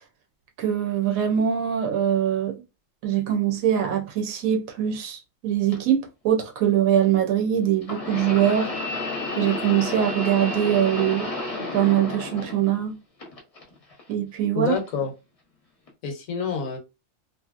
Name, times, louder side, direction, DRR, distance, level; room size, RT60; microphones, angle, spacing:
voice 1, 0.6-2.6 3.0-8.7 9.4-11.3 11.7-12.9 14.1-14.7, right 10 dB, 85° right, 1.0 m, -23 dB
sound 1, 5.7-5.8 7.8-12.9 13.2-14.0 14.8-14.9 15.9-16.0, left 2 dB, 35° left, 0.7 m, -31 dB
voice 2, 14.5-15.1 16.0-16.8, left 6 dB, 75° left, 1.1 m, -27 dB
2.7 x 2.6 x 2.4 m
omnidirectional pair, 1.4 m